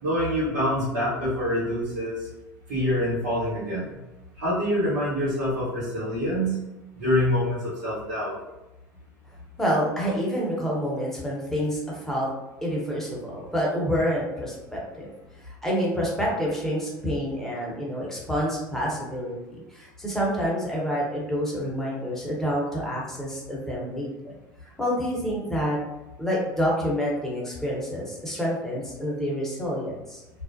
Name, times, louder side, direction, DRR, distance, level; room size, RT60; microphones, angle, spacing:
voice 1, 0.0-2.3 2.7-4.0 4.4-6.6 6.9-8.4, equal, 75° right, -11 dB, 1.1 m, -26 dB
voice 2, 9.6-12.3 12.6-15.1 15.4-24.3 24.6-25.8 26.2-30.2, equal, 5° left, -5 dB, 1.0 m, -28 dB
2.3 x 2.0 x 2.6 m, 1.0 s
hypercardioid pair, 80°, 10 cm